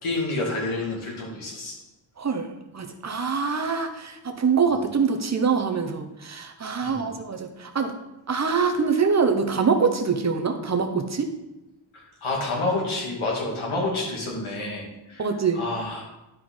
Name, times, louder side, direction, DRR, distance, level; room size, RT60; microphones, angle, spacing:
voice 1, 0.0-1.7 4.7-4.8 6.8-7.1 11.9-15.3 15.5-16.1, left 2 dB, 80° left, -2 dB, 2.3 m, -29 dB
voice 2, 2.2-2.5 2.7-7.9 8.3-11.3 15.2-15.6, right 5 dB, 35° right, 5 dB, 1.0 m, -24 dB
10.5 x 4.5 x 3.9 m, 0.97 s
wide cardioid pair, 95°, 48 cm